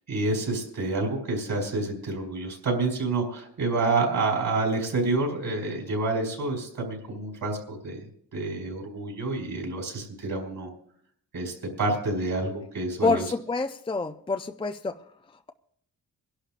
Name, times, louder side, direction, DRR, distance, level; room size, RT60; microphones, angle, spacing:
voice 1, 0.1-8.0 8.3-10.7 11.3-13.2, right 3 dB, 60° right, 0 dB, 4.8 m, -28 dB
voice 2, 13.0-15.0, left 3 dB, 15° left, 7 dB, 0.4 m, -27 dB
28.0 x 11.5 x 2.5 m, 0.66 s
cardioid pair, 100°, 37 cm